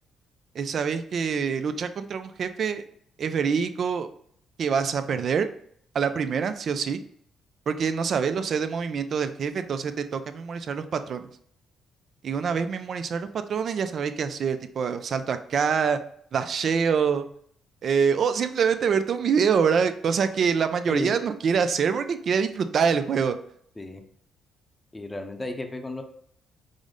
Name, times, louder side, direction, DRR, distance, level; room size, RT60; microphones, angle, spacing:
voice 1, 0.6-2.8 3.2-4.1 4.6-5.5 5.9-7.0 7.7-11.3 12.2-16.0 16.3-17.2 17.8-23.4, right 6 dB, 55° right, 10 dB, 0.4 m, -25 dB
voice 2, 24.9-26.0, left 2 dB, 15° left, 5 dB, 0.6 m, -33 dB
4.9 x 2.1 x 3.8 m, 0.65 s
cardioid pair, 90°, 0 cm